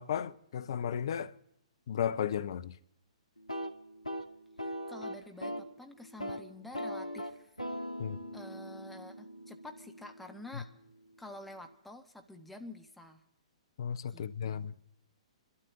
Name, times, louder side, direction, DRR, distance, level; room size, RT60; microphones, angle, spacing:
voice 1, 0.0-1.3 1.9-2.7 8.0-8.2 10.5-10.6 13.8-14.7, left 8 dB, 50° left, 0.6 m, -34 dB
sound 1, 3.4-5.7 6.0-6.4 6.7-10.6, equal, 85° left, 1.4 m, -41 dB
voice 2, 4.6-7.5 8.3-10.7 11.2-13.2 14.1-14.7, left 2 dB, 5° left, 1.3 m, -49 dB
25.5 x 12.5 x 3.8 m
figure-of-eight pair, 120°, 3 cm